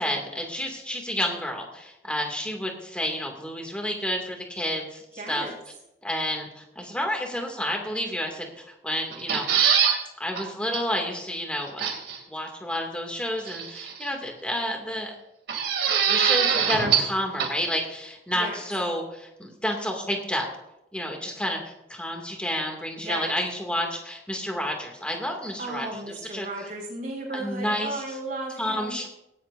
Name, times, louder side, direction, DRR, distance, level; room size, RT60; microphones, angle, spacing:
voice 1, 0.0-5.5 6.0-9.7 10.2-11.9 12.3-15.1 16.1-20.5 20.9-26.7 27.3-28.2 28.6-29.1, equal, 5° left, 2 dB, 2.4 m, -30 dB
voice 2, 5.2-5.5 18.3-18.6 23.0-23.3 25.6-29.0, right 2 dB, 50° right, -3 dB, 6.0 m, -34 dB
sound 1, 9.1-10.0 10.4-10.5 10.7-10.8 11.8-12.2 13.5-14.1 15.5-17.1 17.4-17.5, right 7 dB, 70° right, 2.8 m, -23 dB
18.5 x 16.5 x 2.7 m, 0.89 s
head